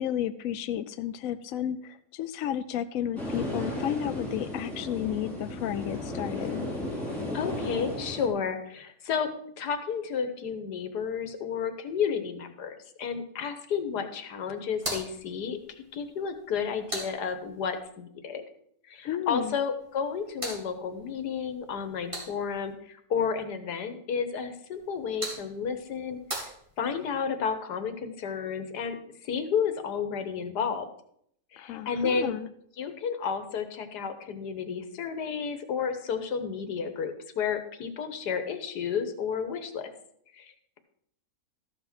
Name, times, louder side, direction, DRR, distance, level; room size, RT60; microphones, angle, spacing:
voice 1, 0.0-6.7 19.0-19.6 31.6-32.5, left 10 dB, 65° left, 11 dB, 0.9 m, -32 dB
sound 1, 3.2-8.3, left 1 dB, ahead, 3.4 m, -34 dB
voice 2, 7.3-9.3 9.6-18.4 18.9-26.5 26.8-29.0 29.2-30.9 31.5-32.3 32.8-39.9 40.4-40.8, left 6 dB, 90° left, 8 dB, 1.7 m, -32 dB
sound 2, 14.7-17.8 19.8-22.7 24.7-27.2, right 1 dB, 20° right, 2.7 m, -41 dB
13.5 x 5.9 x 6.0 m, 0.69 s
omnidirectional pair, 1.7 m